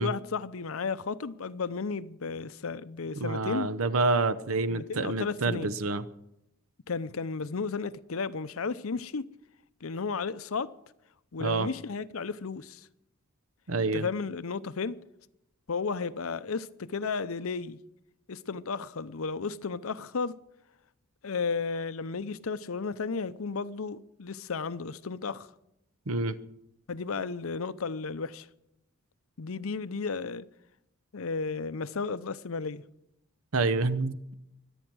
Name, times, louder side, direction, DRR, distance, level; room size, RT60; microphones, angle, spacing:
voice 1, 0.0-3.7 4.7-5.7 6.9-9.3 9.8-10.7 11.3-12.9 13.9-15.0 15.7-17.8 18.3-20.4 21.2-25.5 26.9-28.5 29.4-30.5 31.1-32.8, left 4 dB, 80° left, 0.7 m, -33 dB
voice 2, 3.2-6.0 11.4-11.7 13.7-14.0 26.1-26.4 33.5-34.3, right 3 dB, 80° right, 0.9 m, -28 dB
24.0 x 9.0 x 6.2 m
head